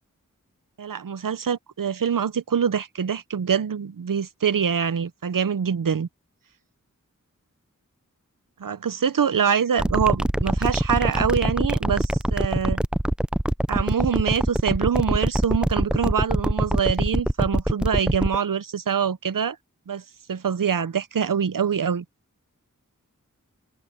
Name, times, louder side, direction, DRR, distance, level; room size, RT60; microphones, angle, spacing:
voice 1, 0.8-6.1 8.6-12.8 13.7-19.6 19.9-20.0 20.3-22.0, right 7 dB, 85° right, 0.7 m, -24 dB
sound 1, 9.8-18.4, right 1 dB, 5° right, 0.3 m, -23 dB
open air
wide cardioid pair, 45°, 32 cm